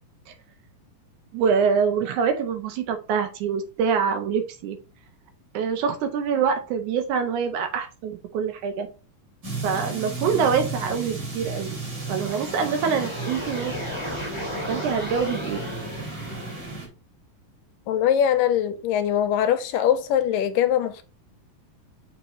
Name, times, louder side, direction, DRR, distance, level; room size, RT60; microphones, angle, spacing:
voice 1, 1.3-4.8 5.5-8.9 9.6-11.7 12.1-13.7 14.7-15.6, right 6 dB, 80° right, 1.8 m, -25 dB
sound 1, 9.4-16.9, right 3 dB, 35° right, 3.2 m, -34 dB
sound 2, 11.9-16.8, left 1 dB, 10° right, 1.7 m, -35 dB
voice 2, 17.9-21.0, left 10 dB, 80° left, 2.2 m, -22 dB
6.9 x 4.9 x 3.0 m
omnidirectional pair, 4.1 m